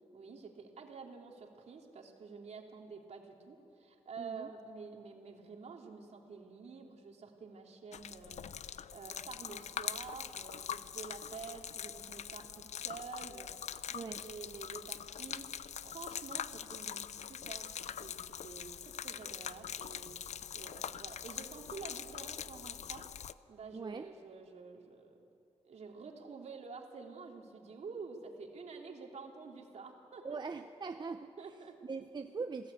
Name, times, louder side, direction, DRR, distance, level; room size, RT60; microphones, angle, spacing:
voice 1, 0.1-23.1 23.5-25.2 25.6-30.4 31.4-31.8, right 4 dB, 65° right, 1 dB, 3.0 m, -49 dB
voice 2, 4.2-4.5 13.9-14.2 23.7-24.0 30.2-31.3 31.8-32.7, right 4 dB, 35° right, 6 dB, 0.8 m, -41 dB
Gurgling / Liquid, 7.9-23.3, left 8 dB, 70° left, 0.6 m, -43 dB
27.0 x 16.5 x 8.5 m, 2.8 s
cardioid pair, 95°, 12 cm